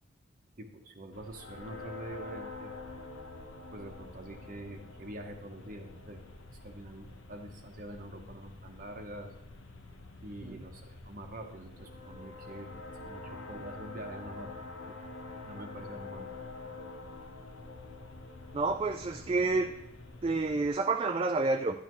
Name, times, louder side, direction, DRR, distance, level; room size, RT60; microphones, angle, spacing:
voice 1, 0.6-2.8 3.7-6.2 6.5-9.3 10.2-14.6 14.9-15.0 15.4-16.3, right 1 dB, 45° right, 3 dB, 0.8 m, -45 dB
sound 1, 1.1-20.7, left 3 dB, 75° left, 1.0 m, -47 dB
voice 2, 18.5-19.7 20.2-21.8, right 3 dB, 25° right, 6 dB, 0.3 m, -29 dB
10.5 x 10.5 x 3.0 m, 0.89 s
head